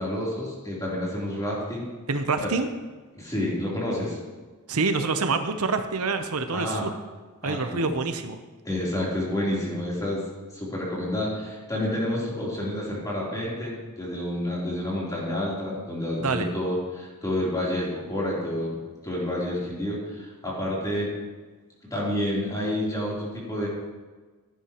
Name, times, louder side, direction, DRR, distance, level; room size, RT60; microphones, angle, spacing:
voice 1, 0.0-1.9 3.1-4.2 6.5-6.9 7.4-7.9 8.6-10.2 10.5-21.1 21.8-23.7, left 1 dB, 15° left, -6 dB, 3.4 m, -29 dB
voice 2, 2.1-2.7 4.7-6.9 7.4-8.4 16.2-16.5, right 4 dB, 80° right, 8 dB, 0.8 m, -26 dB
16.0 x 10.0 x 3.0 m, 1.3 s
head